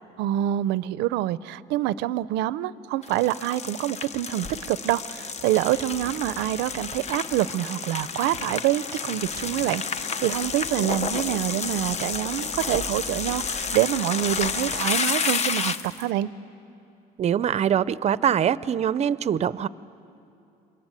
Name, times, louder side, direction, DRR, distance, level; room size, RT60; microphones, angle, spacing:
voice 1, 0.2-16.3, right 14 dB, 90° right, 18 dB, 0.5 m, -26 dB
sound 1, 3.0-16.0, left 5 dB, 40° left, 0.8 m, -30 dB
voice 2, 17.2-19.7, right 9 dB, 40° right, 18 dB, 0.5 m, -23 dB
26.5 x 22.5 x 9.1 m, 2.7 s
cardioid pair, 110°, 17 cm